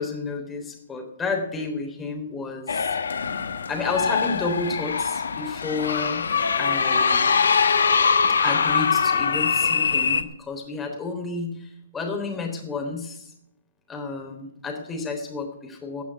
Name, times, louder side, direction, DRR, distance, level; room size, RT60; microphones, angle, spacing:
voice 1, 0.0-2.9 3.7-6.3 6.6-7.3 8.4-13.3 13.9-16.0, left 3 dB, 10° left, 2 dB, 3.6 m, -31 dB
sound 1, 2.7-10.2, left 5 dB, 70° left, 1.1 m, -22 dB
17.0 x 6.2 x 9.5 m, 0.78 s
figure-of-eight pair, 130°, 0 cm